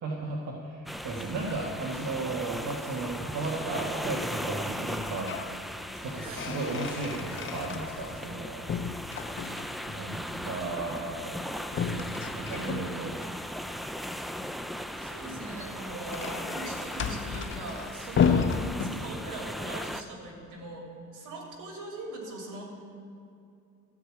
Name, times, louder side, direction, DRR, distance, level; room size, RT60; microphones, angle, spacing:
voice 1, 0.0-5.3 6.0-8.7 9.9-13.2, right 3 dB, 60° right, -3 dB, 1.5 m, -35 dB
sound 1, 0.9-20.0, equal, ahead, 0.4 m, -38 dB
sound 2, 4.9-5.5 5.9-8.4 8.7-9.9 11.7-13.3 15.3-19.5, left 6 dB, 40° left, 0.7 m, -32 dB
voice 2, 15.0-22.6, right 2 dB, 75° right, -1 dB, 2.8 m, -41 dB
13.5 x 4.9 x 8.4 m, 2.5 s
cardioid pair, 90°, 30 cm